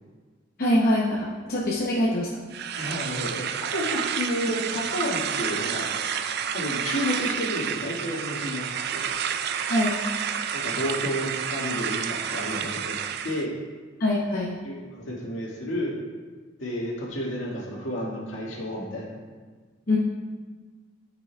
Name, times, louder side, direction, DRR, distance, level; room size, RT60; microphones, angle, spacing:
voice 1, 0.6-2.3 9.7-10.0 14.0-14.6 19.9-20.0, left 1 dB, 50° left, -5 dB, 0.9 m, -23 dB
sound 1, 2.5-13.5, right 8 dB, 55° right, 0.4 m, -30 dB
voice 2, 2.8-5.9 6.5-9.1 10.5-13.0 13.2-13.5 14.6-16.0 16.6-19.1, equal, 75° left, -5 dB, 2.0 m, -31 dB
12.5 x 5.9 x 2.3 m, 1.5 s
head